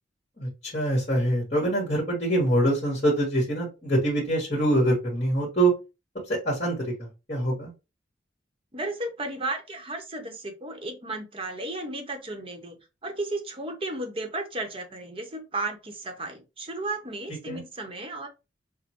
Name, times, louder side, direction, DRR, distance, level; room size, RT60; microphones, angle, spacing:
voice 1, 0.4-5.7 6.3-7.7 17.5-17.6, right 1 dB, 40° left, -5 dB, 1.6 m, -25 dB
voice 2, 8.7-18.3, right 2 dB, 30° right, 4 dB, 0.9 m, -34 dB
6.3 x 2.1 x 3.0 m, 0.28 s
head